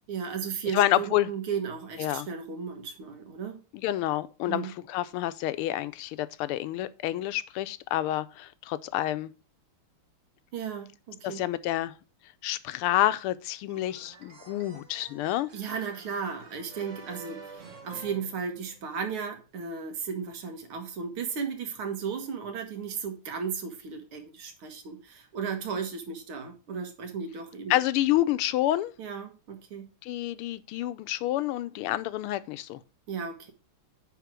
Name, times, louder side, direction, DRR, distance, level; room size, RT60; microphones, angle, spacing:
voice 1, 0.1-3.6 4.5-4.7 10.5-11.4 15.5-27.7 29.0-29.9 33.1-33.5, right 6 dB, 75° right, 2.3 m, -35 dB
voice 2, 0.7-1.3 2.0-2.3 3.7-9.3 11.2-11.9 12.4-15.5 27.7-28.9 30.0-32.8, left 14 dB, 85° left, 1.5 m, -28 dB
sound 1, 13.7-19.1, right 4 dB, 40° right, 1.3 m, -49 dB
9.4 x 3.7 x 6.1 m
omnidirectional pair, 2.4 m